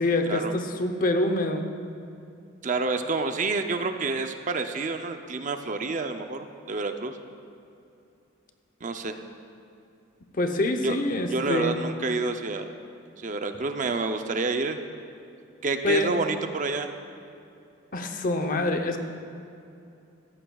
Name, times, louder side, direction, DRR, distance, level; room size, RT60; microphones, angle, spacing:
voice 1, 0.0-1.7 10.3-11.8 13.6-13.7 15.8-16.1 17.9-19.0, left 2 dB, 45° left, 6 dB, 0.8 m, -25 dB
voice 2, 2.6-7.2 8.8-9.2 10.8-11.0 11.3-12.7 13.2-14.8 15.6-16.9, right 3 dB, 40° right, 7 dB, 0.5 m, -28 dB
15.0 x 14.5 x 2.3 m, 2.6 s
head